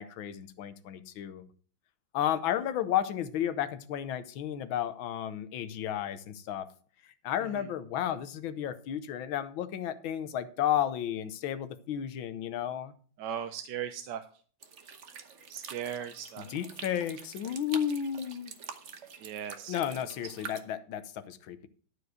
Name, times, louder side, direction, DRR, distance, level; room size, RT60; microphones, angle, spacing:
voice 1, 0.0-1.4 2.1-6.7 7.2-12.9 16.4-18.5 19.7-21.7, left 10 dB, 80° left, 1.6 m, -33 dB
voice 2, 13.2-14.2 15.5-16.5 19.2-19.7, right 9 dB, 70° right, 1.2 m, -37 dB
sound 1, 14.6-20.6, right 6 dB, 45° right, 1.1 m, -46 dB
12.5 x 4.8 x 6.4 m
omnidirectional pair, 2.2 m